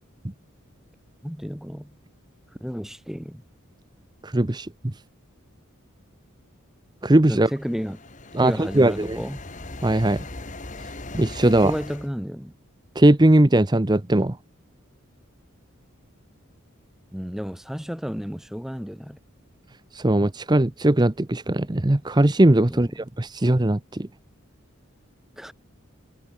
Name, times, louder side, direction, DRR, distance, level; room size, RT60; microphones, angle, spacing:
voice 1, 1.2-2.0 2.6-3.4 7.3-8.0 8.4-9.4 11.6-12.5 17.1-19.2 22.7-22.9 25.4-25.5, equal, ahead, 1.2 m, -32 dB
voice 2, 4.2-4.9 7.0-7.5 8.3-9.2 9.8-10.2 11.1-11.7 12.9-14.4 19.9-24.1, right 1 dB, 20° right, 0.8 m, -19 dB
sound 1, 7.4-12.1, left 2 dB, 35° left, 2.0 m, -39 dB
head